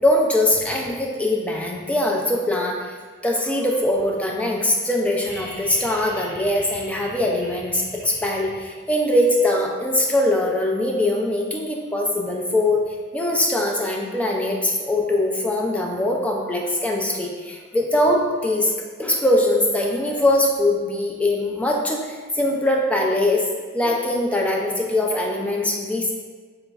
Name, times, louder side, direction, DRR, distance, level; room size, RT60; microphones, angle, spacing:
voice 1, 0.0-2.9 3.2-18.7 19.0-23.4 23.7-26.1, left 1 dB, 5° left, -1 dB, 0.3 m, -22 dB
sound 1, 5.2-9.0 10.7-10.8, equal, 55° left, 0.8 m, -40 dB
3.6 x 3.0 x 2.3 m, 1.5 s
head